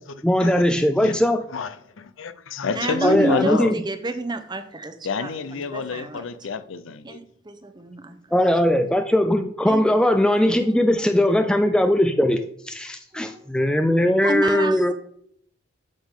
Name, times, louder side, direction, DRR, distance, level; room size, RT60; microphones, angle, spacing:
voice 1, 0.2-1.4 3.0-3.8 8.3-12.4 12.7-14.9, left 1 dB, 5° left, 0.4 m, -19 dB
voice 2, 1.5-3.7 5.0-7.2, left 5 dB, 80° left, 0.6 m, -29 dB
voice 3, 2.7-6.3 7.0-8.2 9.7-10.0 10.8-11.0 13.1-13.5 14.2-14.9, right 1 dB, 20° right, 0.7 m, -29 dB
8.9 x 7.2 x 3.7 m
head